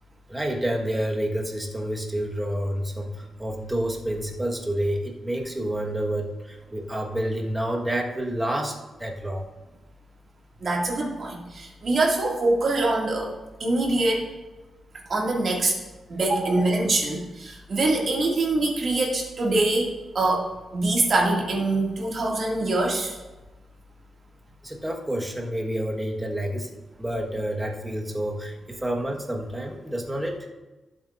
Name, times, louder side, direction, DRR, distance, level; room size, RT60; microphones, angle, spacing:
voice 1, 0.3-9.4 24.6-26.7 27.0-30.4, right 1 dB, 10° right, 1 dB, 1.3 m, -29 dB
voice 2, 10.6-13.3 13.6-14.2 15.1-15.8 16.1-20.4 20.7-23.2, right 2 dB, 45° right, -1 dB, 2.1 m, -24 dB
18.0 x 7.7 x 2.5 m, 1.1 s
wide cardioid pair, 130°, 0 cm